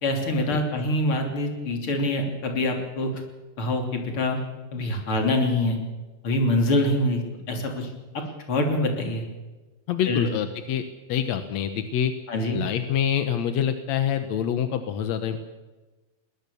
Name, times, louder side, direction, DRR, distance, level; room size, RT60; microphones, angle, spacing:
voice 1, 0.0-3.1 3.6-4.4 4.7-5.8 6.2-7.9 8.5-9.2 10.1-10.3 12.3-12.6, left 1 dB, 35° left, 3 dB, 3.7 m, -25 dB
voice 2, 9.9-12.1 12.5-15.4, left 9 dB, 70° left, 8 dB, 1.7 m, -26 dB
21.5 x 20.0 x 7.1 m, 1.2 s
omnidirectional pair, 4.4 m